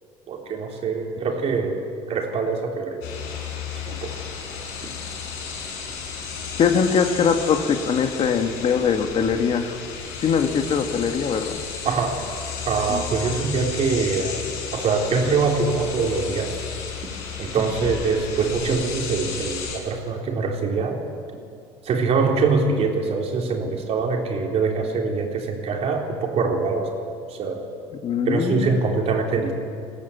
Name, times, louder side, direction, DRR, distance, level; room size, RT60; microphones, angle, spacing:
voice 1, 0.3-1.8 2.1-3.0 3.9-4.1 11.8-12.2 12.6-14.4 14.7-16.6 17.4-21.0 21.8-26.9 27.3-27.7 28.3-29.5, right 4 dB, 50° right, 1 dB, 4.1 m, -24 dB
sound 1, 3.0-19.8, left 6 dB, 90° left, 5.2 m, -33 dB
voice 2, 6.6-9.8 10.2-11.6 12.9-13.0 28.0-28.9, left 6 dB, 50° left, 6 dB, 1.9 m, -22 dB
21.0 x 16.5 x 8.6 m, 2.4 s
supercardioid pair, 95°, 13 cm